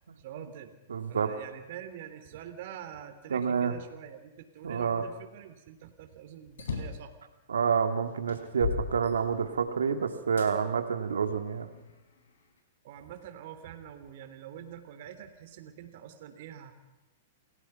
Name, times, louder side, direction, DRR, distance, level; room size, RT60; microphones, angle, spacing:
voice 1, 0.2-0.7 1.1-7.1 12.8-16.7, right 10 dB, 60° right, 8 dB, 3.4 m, -45 dB
voice 2, 0.9-1.4 3.3-3.7 4.6-5.0 7.5-11.7, right 6 dB, 90° right, 7 dB, 2.4 m, -28 dB
sound 1, 6.5-7.1 7.7-7.8 8.3-9.7 10.4-10.5 11.2-12.3, left 6 dB, 80° left, 4.7 m, -36 dB
28.5 x 17.5 x 5.9 m, 1.1 s
hypercardioid pair, 125°, 0 cm